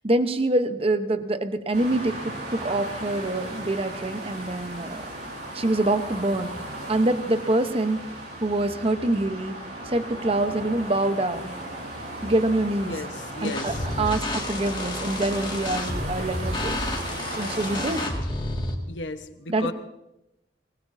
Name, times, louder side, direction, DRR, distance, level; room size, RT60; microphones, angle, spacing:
voice 1, 0.0-5.1 5.5-6.5 6.9-8.0 8.4-11.6 12.2-12.9 13.4-16.8 17.4-18.1 19.5-19.7, right 2 dB, 30° right, 9 dB, 0.9 m, -25 dB
sound 1, 1.7-18.1, right 1 dB, 55° right, 6.6 m, -36 dB
voice 2, 12.8-14.2 18.9-19.7, left 2 dB, 80° left, 8 dB, 1.1 m, -35 dB
sound 2, 13.4-18.7, left 2 dB, 25° left, 2.1 m, -31 dB
25.5 x 20.0 x 2.7 m, 0.91 s
head